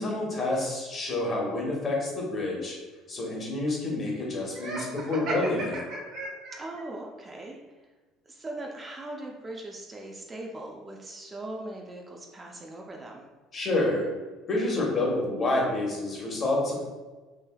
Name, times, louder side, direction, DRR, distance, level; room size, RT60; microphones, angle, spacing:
voice 1, 0.0-2.8 3.1-5.8 13.5-14.1 14.5-16.8, left 2 dB, 40° left, -3 dB, 1.0 m, -28 dB
Laughter, 4.5-6.8, right 2 dB, 65° right, 0.6 m, -35 dB
voice 2, 6.5-7.8 8.2-13.3, right 1 dB, 25° right, 0 dB, 0.4 m, -40 dB
3.2 x 2.6 x 2.3 m, 1.3 s
supercardioid pair, 100°, 0 cm